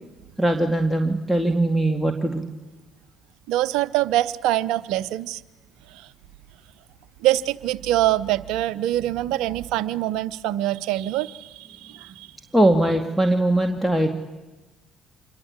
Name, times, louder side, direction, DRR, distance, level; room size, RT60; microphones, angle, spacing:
voice 1, 0.4-2.4 12.5-14.1, right 1 dB, ahead, 3 dB, 2.3 m, -20 dB
voice 2, 3.5-5.4 5.9-6.1 7.2-12.3, right 14 dB, 75° right, 16 dB, 0.8 m, -24 dB
27.0 x 22.5 x 8.3 m, 1.1 s
hypercardioid pair, 50°, 0 cm